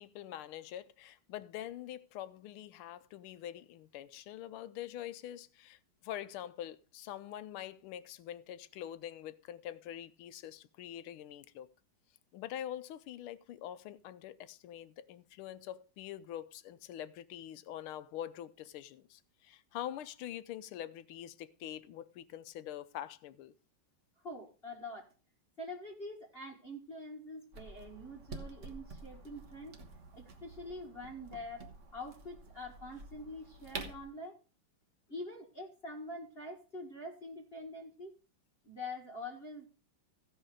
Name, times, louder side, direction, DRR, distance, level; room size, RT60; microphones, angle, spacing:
voice 1, 0.0-11.7 12.3-23.5, left 11 dB, 80° left, 1.6 m, -45 dB
voice 2, 24.2-25.1 25.6-29.8 30.1-34.4 35.1-38.1 38.6-39.7, left 1 dB, 30° left, 1.6 m, -45 dB
sound 1, 27.5-34.1, right 3 dB, 40° right, 1.4 m, -49 dB
15.5 x 5.5 x 4.9 m
omnidirectional pair, 2.3 m